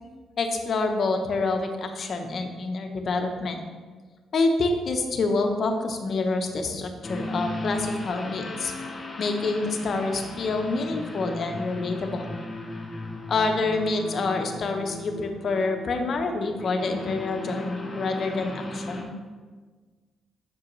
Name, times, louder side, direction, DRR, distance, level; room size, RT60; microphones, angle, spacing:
voice 1, 0.4-3.6 4.3-8.7 9.2-12.3 13.3-19.1, left 3 dB, 50° left, 5 dB, 0.8 m, -27 dB
sound 1, 7.0-19.0, left 2 dB, 25° left, 1.3 m, -36 dB
7.3 x 6.2 x 3.1 m, 1.4 s
cardioid pair, 90°, 0 cm